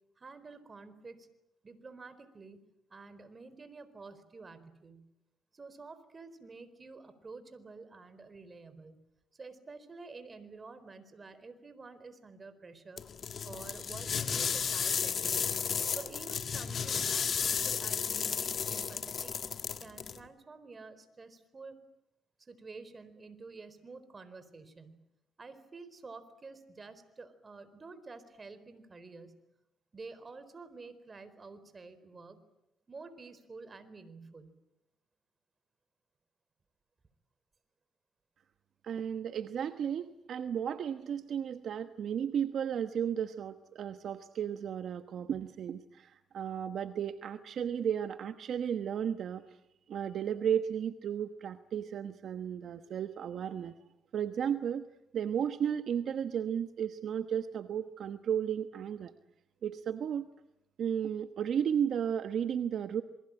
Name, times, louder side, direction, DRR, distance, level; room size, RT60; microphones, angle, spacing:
voice 1, 0.2-1.3 1.6-2.6 2.9-5.1 5.5-9.0 9.3-13.0 13.4-15.5 15.9-19.3 19.8-21.8 22.4-25.0 25.4-29.4 29.9-32.4 32.9-34.5, right 4 dB, 30° right, 13 dB, 4.2 m, -49 dB
sound 1, 13.0-20.2, left 7 dB, 50° left, 1.7 m, -33 dB
voice 2, 38.8-49.4 49.9-53.7 54.1-54.9 55.1-59.1 59.6-60.3 60.8-63.0, right 8 dB, 65° right, 9 dB, 1.1 m, -34 dB
27.5 x 23.0 x 8.9 m, 0.87 s
cardioid pair, 90°, 0 cm